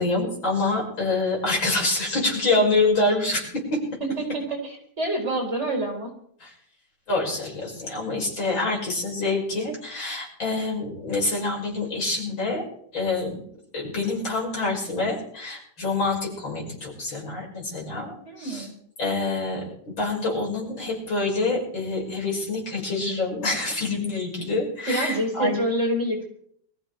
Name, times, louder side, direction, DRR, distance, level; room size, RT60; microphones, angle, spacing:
voice 1, 0.0-3.8 6.4-6.5 7.1-12.6 12.9-13.4 13.7-18.7 19.0-19.6 20.0-25.6, left 2 dB, 65° left, -2 dB, 6.3 m, -26 dB
voice 2, 4.0-6.1 18.2-18.7 24.9-26.3, right 1 dB, 30° right, 0 dB, 4.5 m, -27 dB
23.5 x 14.5 x 3.4 m, 0.64 s
omnidirectional pair, 2.3 m